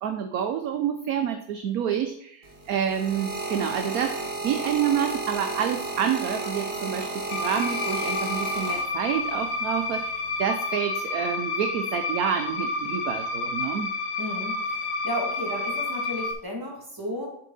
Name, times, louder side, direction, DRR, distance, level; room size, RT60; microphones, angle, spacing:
voice 1, 0.0-13.9, right 8 dB, 70° right, 7 dB, 1.0 m, -28 dB
sound 1, 2.4-9.3 10.1-10.4, right 2 dB, 35° right, 1.7 m, -33 dB
sound 2, 7.3-16.3, left 3 dB, 70° left, 1.4 m, -30 dB
voice 2, 14.2-17.3, equal, 10° right, -2 dB, 2.3 m, -33 dB
7.5 x 6.7 x 4.0 m, 0.69 s
omnidirectional pair, 1.8 m